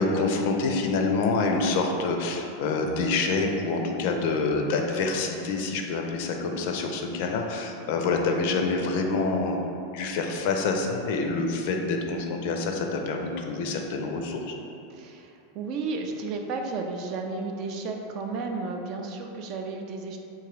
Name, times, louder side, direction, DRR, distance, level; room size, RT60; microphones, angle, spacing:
voice 1, 0.0-9.6 9.9-14.6, left 3 dB, 60° left, 3 dB, 0.4 m, -27 dB
voice 2, 14.9-20.2, right 3 dB, 50° right, 3 dB, 0.4 m, -33 dB
3.7 x 2.6 x 3.0 m, 2.7 s
hypercardioid pair, 90°, 0 cm